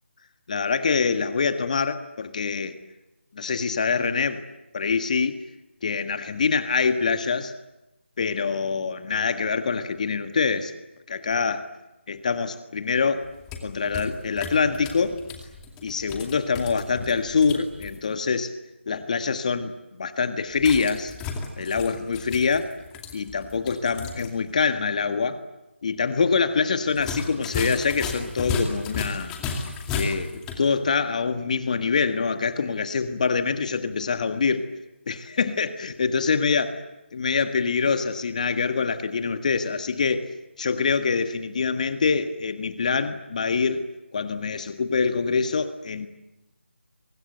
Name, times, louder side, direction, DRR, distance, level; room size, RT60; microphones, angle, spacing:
voice 1, 0.5-2.8 3.3-4.4 4.7-5.4 5.8-7.5 8.2-10.7 11.1-11.7 12.1-13.3 13.6-15.2 15.8-18.5 18.9-21.1 21.6-22.7 23.1-25.4 25.8-29.3 29.9-34.6 35.1-36.7 37.1-40.3 40.6-43.8 44.1-46.1, left 5 dB, 40° left, 9 dB, 1.7 m, -25 dB
sound 1, 13.2-18.0 20.6-24.3 24.6-24.7 26.9-30.7, left 4 dB, 10° left, 2.3 m, -34 dB
29.5 x 24.5 x 8.0 m, 1.0 s
figure-of-eight pair, 160°, 7 cm